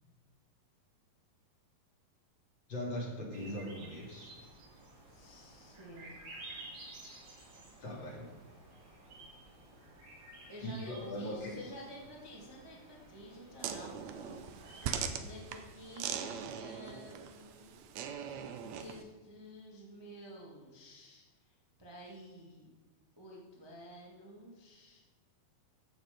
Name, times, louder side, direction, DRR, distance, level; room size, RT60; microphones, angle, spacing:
voice 1, 2.7-4.3 7.8-8.3 10.6-11.6, left 1 dB, 35° left, -2 dB, 2.8 m, -40 dB
sound 1, 3.3-15.0, right 2 dB, 60° right, 4.7 m, -53 dB
voice 2, 5.1-6.1 10.5-14.5 15.1-17.8 18.5-22.7 23.2-25.0, equal, 20° right, -4 dB, 0.6 m, -51 dB
sound 2, 13.6-19.0, right 7 dB, 80° right, 1.6 m, -41 dB
15.5 x 7.0 x 5.2 m, 1.3 s
omnidirectional pair, 4.3 m